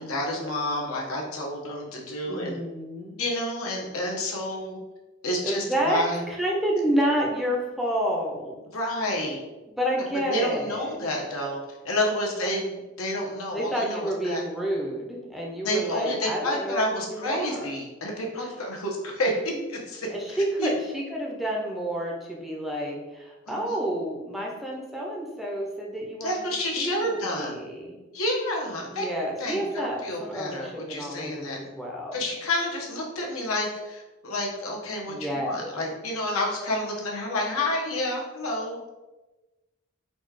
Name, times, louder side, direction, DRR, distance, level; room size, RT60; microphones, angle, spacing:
voice 1, 0.0-2.6 3.2-4.8 5.2-6.2 8.7-9.4 10.3-11.6 11.8-12.6 13.0-14.4 15.6-20.1 20.6-20.7 23.5-23.8 26.2-27.6 28.1-29.1 29.4-31.6 32.1-38.8, left 1 dB, 80° left, 0 dB, 1.0 m, -29 dB
voice 2, 2.3-3.2 5.4-8.6 9.7-10.9 12.4-12.8 13.5-17.7 18.4-18.5 20.1-26.4 26.8-28.0 28.9-32.2 35.1-35.7, equal, ahead, -2 dB, 0.6 m, -29 dB
4.1 x 2.4 x 4.7 m, 1.1 s
head